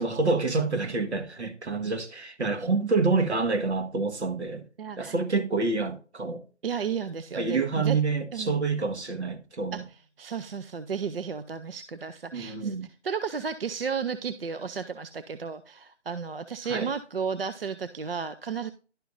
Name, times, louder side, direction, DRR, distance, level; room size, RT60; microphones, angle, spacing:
voice 1, 0.0-4.6 5.0-6.4 7.3-9.8 12.3-12.9 16.7-16.9, right 3 dB, 70° right, 1.4 m, -27 dB
voice 2, 4.8-5.1 6.6-8.0 8.3-8.6 9.7-9.8 10.2-12.8 13.0-18.7, right 6 dB, 55° right, 0.6 m, -33 dB
11.5 x 5.6 x 2.6 m
figure-of-eight pair, 145°, 35 cm